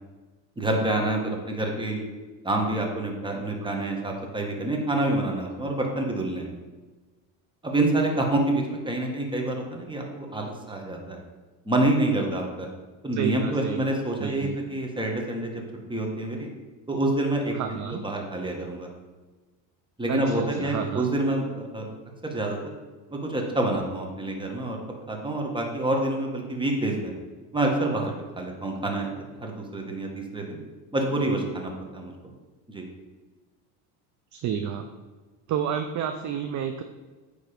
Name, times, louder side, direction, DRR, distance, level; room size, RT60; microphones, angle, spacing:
voice 1, 0.6-2.0 2.4-6.5 7.6-11.2 11.6-12.7 13.0-15.5 15.9-16.5 16.9-18.9 20.0-21.9 22.2-22.6 23.1-24.8 25.1-27.1 27.5-30.6 30.9-32.3 32.7-32.9, right 2 dB, 10° right, 1 dB, 1.4 m, -27 dB
voice 2, 13.2-13.8 14.2-14.6 17.5-18.0 20.1-21.0 34.3-34.9 35.5-36.8, right 8 dB, 40° right, 7 dB, 0.5 m, -30 dB
9.2 x 3.5 x 5.1 m, 1.3 s
supercardioid pair, 105°, 49 cm